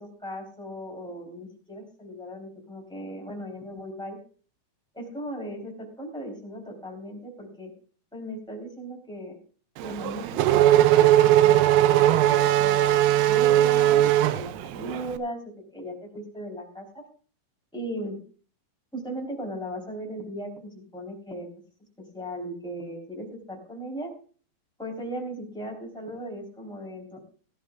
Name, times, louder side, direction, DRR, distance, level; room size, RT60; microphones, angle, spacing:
voice 1, 0.0-4.2 4.9-7.7 8.1-9.4 9.8-12.9 13.3-17.0 17.7-18.2 18.9-21.5 22.1-24.1 24.8-27.2, equal, ahead, -2 dB, 3.7 m, -37 dB
Race car auto racing / Accelerating revving vroom, 9.8-15.1, right 13 dB, 80° right, 2.3 m, -19 dB
19.5 x 11.5 x 2.5 m, 0.40 s
omnidirectional pair, 4.5 m